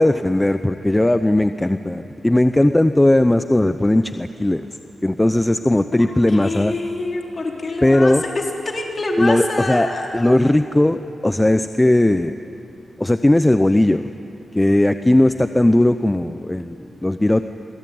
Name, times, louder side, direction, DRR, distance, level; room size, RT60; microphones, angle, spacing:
voice 1, 0.0-4.7 5.0-6.7 7.8-8.2 9.2-9.9 10.1-12.4 13.0-14.0 14.5-17.4, left 1 dB, 15° left, 10 dB, 0.7 m, -17 dB
voice 2, 5.9-10.2, left 2 dB, 40° left, 0 dB, 4.3 m, -26 dB
27.5 x 23.0 x 9.4 m, 2.7 s
wide cardioid pair, 100°, 0 cm